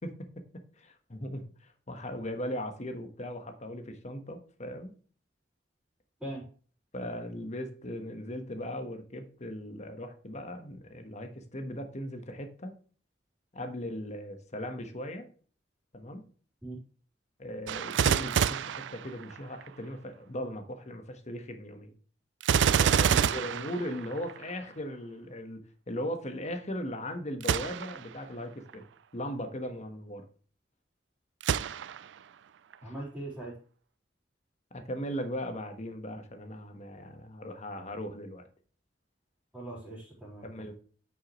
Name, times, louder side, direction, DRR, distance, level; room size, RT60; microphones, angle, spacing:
voice 1, 0.8-4.9 6.9-12.7 13.5-15.3 15.9-16.2 17.4-21.9 22.7-25.6 25.9-28.8 29.1-30.2 32.8-32.9 34.7-38.4 40.4-40.7, equal, 40° left, 6 dB, 1.3 m, -38 dB
Gunshot gunfire, 17.7-19.7 22.4-24.5 27.4-28.1 28.7-28.8 31.4-32.2 32.7-32.8, right 8 dB, 85° right, 0.4 m, -27 dB
voice 2, 32.8-33.5 39.5-40.5, right 1 dB, 5° right, -11 dB, 3.9 m, -40 dB
9.2 x 6.2 x 3.1 m, 0.43 s
head